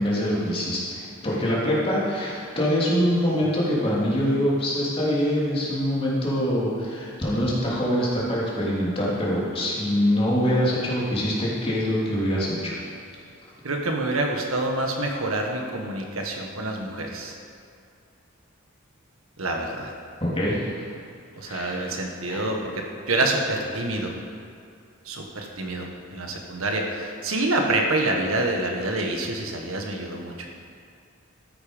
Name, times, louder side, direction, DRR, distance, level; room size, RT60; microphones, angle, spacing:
voice 1, 0.0-12.7 20.2-20.9 21.4-21.9 22.3-22.4, equal, 25° left, -7 dB, 3.1 m, -24 dB
voice 2, 13.6-17.3 19.4-19.9 21.3-24.1 25.0-30.5, right 2 dB, 90° right, 1 dB, 1.6 m, -27 dB
13.5 x 8.8 x 5.3 m, 2.4 s
head